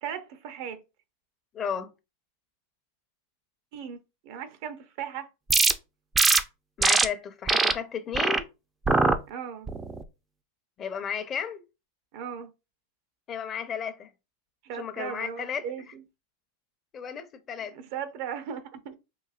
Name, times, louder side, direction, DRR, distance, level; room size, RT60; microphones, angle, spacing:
voice 1, 0.0-0.8 3.7-5.3 9.3-9.7 12.1-12.5 14.6-16.0 17.7-19.0, right 8 dB, 60° right, 0.6 m, -37 dB
voice 2, 1.5-1.9 6.8-8.5 10.8-11.6 13.3-14.1 14.8-15.7 16.9-17.7, left 7 dB, 30° left, 0.6 m, -33 dB
sound 1, 5.5-5.7 6.2-6.4 6.8-7.1 7.5-7.7 8.1-8.4 8.9-9.2 9.7-10.0, right 3 dB, 15° right, 0.4 m, -21 dB
3.9 x 2.6 x 2.4 m
hypercardioid pair, 105°, 0 cm